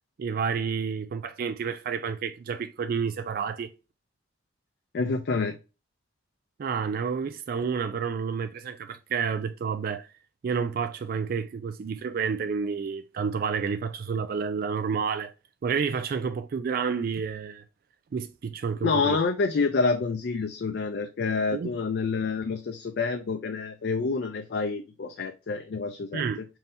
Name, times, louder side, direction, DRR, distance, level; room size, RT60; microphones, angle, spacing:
voice 1, 0.2-3.7 6.6-10.1 10.4-15.3 15.6-17.6 18.1-19.2 21.5-21.8 26.1-26.4, right 6 dB, 50° right, 0.3 m, -30 dB
voice 2, 4.9-5.6 18.8-26.5, left 4 dB, 60° left, 0.4 m, -28 dB
5.3 x 2.7 x 2.6 m
head